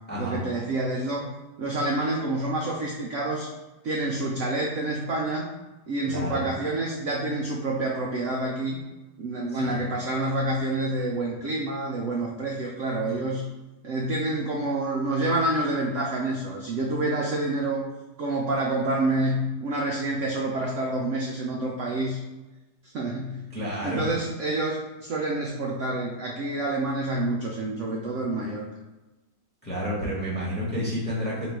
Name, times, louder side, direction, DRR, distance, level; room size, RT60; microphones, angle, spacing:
voice 1, 0.2-1.3 1.6-3.5 3.8-5.5 5.9-8.8 9.2-13.5 13.8-17.9 18.2-22.2 22.9-23.6 23.8-28.6, right 2 dB, 75° right, -2 dB, 0.7 m, -28 dB
voice 2, 6.1-6.4 9.5-9.8 23.5-24.1 29.6-31.5, equal, 5° left, -7 dB, 1.2 m, -30 dB
3.8 x 2.9 x 4.5 m, 1.1 s
omnidirectional pair, 1.9 m